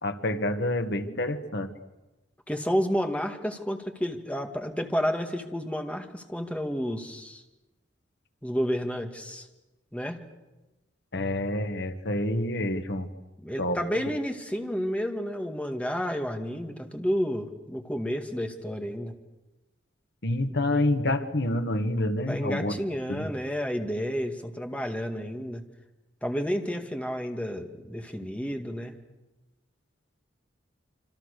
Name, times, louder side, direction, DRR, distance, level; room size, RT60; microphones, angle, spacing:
voice 1, 0.0-1.7 11.1-13.1 13.6-14.1 20.2-22.8 23.1-23.3, left 1 dB, 65° left, 8 dB, 1.7 m, -28 dB
voice 2, 2.5-7.4 8.4-9.5 9.9-10.2 13.4-19.1 22.3-25.6 26.2-28.9, equal, 5° left, 4 dB, 2.1 m, -31 dB
27.0 x 25.0 x 6.7 m, 1.1 s
head